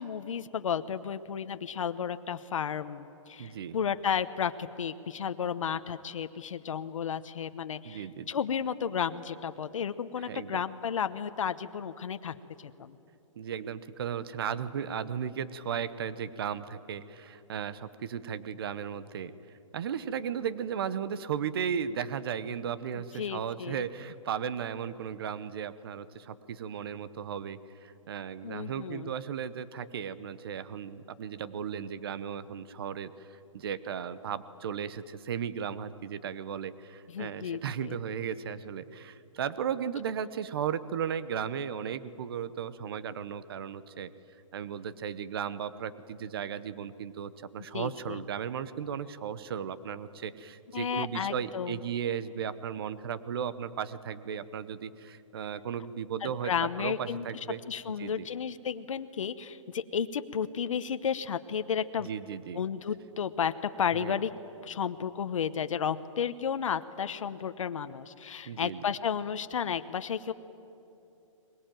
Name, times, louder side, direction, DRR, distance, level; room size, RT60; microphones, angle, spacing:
voice 1, 0.0-13.0 22.9-23.8 28.4-29.1 37.1-38.0 47.7-48.2 50.7-51.8 56.2-57.2 57.7-62.1 62.5-64.3 64.6-70.3, left 7 dB, 70° left, 11 dB, 1.0 m, -33 dB
voice 2, 3.4-3.8 7.8-8.3 10.2-10.5 13.4-19.3 19.7-44.1 44.5-57.6 58.0-58.3 62.0-62.6 63.9-64.2 68.5-68.8, right 8 dB, 45° right, 15 dB, 1.0 m, -35 dB
22.0 x 20.5 x 9.1 m, 2.8 s
hypercardioid pair, 165°, 17 cm